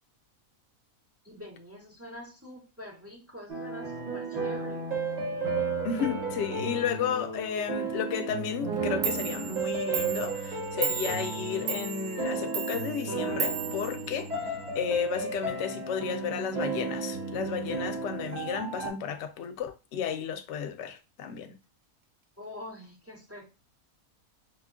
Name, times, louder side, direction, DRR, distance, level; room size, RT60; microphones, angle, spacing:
voice 1, 1.3-4.9 22.4-23.6, left 1 dB, 20° right, 0.4 m, -45 dB
sound 1, 3.5-18.9, right 4 dB, 35° right, 0.8 m, -33 dB
voice 2, 5.8-14.3 14.8-21.6, left 7 dB, 65° left, 0.7 m, -33 dB
Clock, 8.7-8.8 9.0-14.7, right 8 dB, 70° right, 1.0 m, -35 dB
4.9 x 2.2 x 2.4 m
omnidirectional pair, 1.5 m